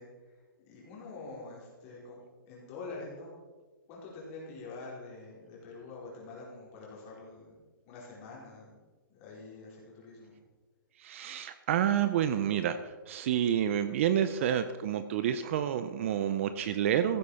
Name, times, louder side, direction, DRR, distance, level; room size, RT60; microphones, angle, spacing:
voice 1, 0.0-2.2 2.5-3.3 3.9-7.5 7.9-8.8 9.1-10.4, left 3 dB, 25° left, -4 dB, 4.6 m, -46 dB
voice 2, 11.0-17.2, right 10 dB, 35° right, 11 dB, 0.6 m, -29 dB
15.0 x 8.3 x 5.7 m, 1.3 s
hypercardioid pair, 160°, 11 cm